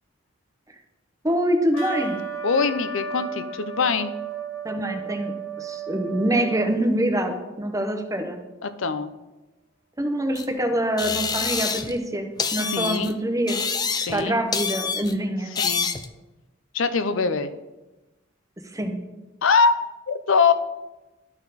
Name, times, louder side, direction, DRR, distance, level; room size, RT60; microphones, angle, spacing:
voice 1, 1.2-2.2 4.6-8.4 10.0-13.6 14.1-15.5 18.7-19.0, right 1 dB, 15° right, 4 dB, 0.9 m, -25 dB
Trumpet, 1.7-6.7, right 5 dB, 90° left, 1.2 m, -34 dB
sound 1, 1.8-6.7, left 1 dB, 85° right, 1.6 m, -46 dB
voice 2, 2.4-4.1 8.6-9.1 12.7-13.1 14.0-14.4 15.6-15.8 16.7-17.5 19.4-19.7 20.1-20.5, left 5 dB, 70° left, 11 dB, 0.6 m, -22 dB
sound 2, 10.4-10.5 11.0-12.0 12.4-13.1 13.5-14.2 14.5-15.1 15.6-16.1, left 5 dB, 20° left, 0.4 m, -27 dB
12.5 x 4.4 x 4.1 m, 1.1 s
head